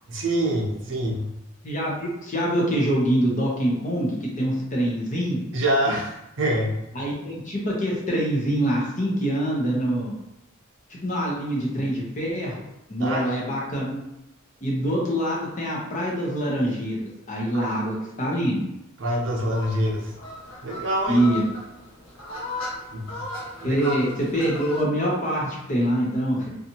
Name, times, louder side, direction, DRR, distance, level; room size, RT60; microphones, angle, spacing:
voice 1, 0.1-1.3 5.5-6.8 13.0-13.2 17.5-17.7 19.0-20.1 20.6-21.3 22.9-23.3 23.6-24.0, right 1 dB, 60° right, -1 dB, 0.6 m, -25 dB
voice 2, 1.6-5.4 6.9-10.1 10.9-12.6 12.9-14.1 14.6-17.0 17.3-18.7 21.1-21.4 23.6-24.1 24.3-26.7, right 1 dB, 35° left, -3 dB, 0.7 m, -25 dB
sound 1, 19.5-24.8, left 2 dB, 75° left, 0.7 m, -37 dB
2.7 x 2.3 x 2.8 m, 0.86 s
head